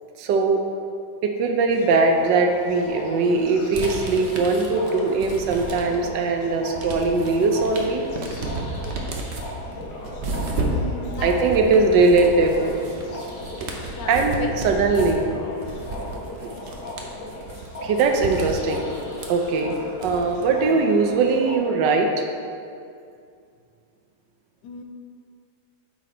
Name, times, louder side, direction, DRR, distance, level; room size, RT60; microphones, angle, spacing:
voice 1, 0.2-0.6 1.2-8.0 11.2-12.8 13.6-13.7 14.1-14.4 14.6-15.3 17.8-18.9 19.3-22.2, right 3 dB, 80° right, 3 dB, 1.3 m, -20 dB
sound 1, 1.7-21.6, left 1 dB, 65° left, 1.7 m, -37 dB
sound 2, 3.7-6.2 6.5-20.4, right 2 dB, 50° right, 0.8 m, -32 dB
voice 2, 10.6-11.9 12.5-12.6 14.0-15.2 24.6-24.8, left 5 dB, 80° left, 3 dB, 1.4 m, -36 dB
9.1 x 4.1 x 4.2 m, 2.4 s
omnidirectional pair, 1.9 m